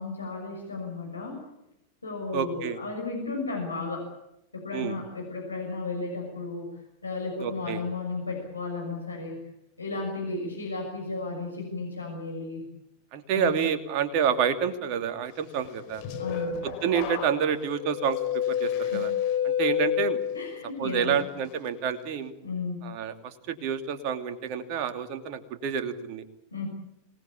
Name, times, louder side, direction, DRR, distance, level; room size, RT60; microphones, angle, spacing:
voice 1, 0.0-1.4 2.0-4.1 4.5-6.7 7.0-9.4 9.8-12.7 13.3-13.5 16.2-16.6 18.8-19.0 20.3-21.3 22.4-22.8 26.5-26.7, left 3 dB, 80° left, 0 dB, 6.2 m, -34 dB
voice 2, 2.3-2.8 4.7-5.0 7.4-7.8 13.1-16.0 16.6-19.1 19.4-20.2 20.8-22.3 22.8-26.2, right 7 dB, 45° right, 7 dB, 2.7 m, -28 dB
sound 1, 15.6-20.7 21.1-21.5, left 9 dB, 45° left, 4.6 m, -29 dB
26.0 x 19.5 x 8.6 m, 0.84 s
figure-of-eight pair, 90°, 0 cm